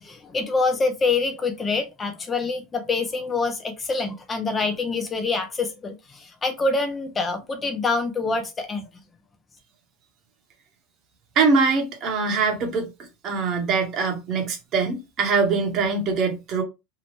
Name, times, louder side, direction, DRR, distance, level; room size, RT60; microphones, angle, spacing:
voice 1, 0.0-8.9, left 3 dB, 20° left, 0.4 m, -26 dB
voice 2, 11.3-16.6, right 4 dB, 40° right, 0.9 m, -23 dB
2.8 x 2.0 x 2.9 m
supercardioid pair, 130°, 0 cm